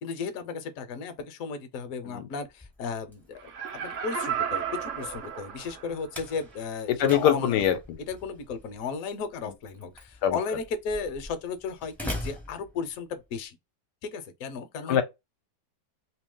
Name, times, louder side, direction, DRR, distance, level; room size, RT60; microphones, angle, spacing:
voice 1, 0.0-7.6 8.1-13.6 14.0-15.0, left 5 dB, 60° left, 1.0 m, -35 dB
Slam, 2.4-13.4, left 1 dB, ahead, 0.5 m, -44 dB
Laughter, 3.4-6.1 6.5-6.6, right 8 dB, 55° right, 0.9 m, -33 dB
voice 2, 6.9-8.0 10.2-10.4 14.9-15.0, left 10 dB, 80° left, 1.2 m, -23 dB
3.0 x 2.8 x 3.6 m
omnidirectional pair, 1.9 m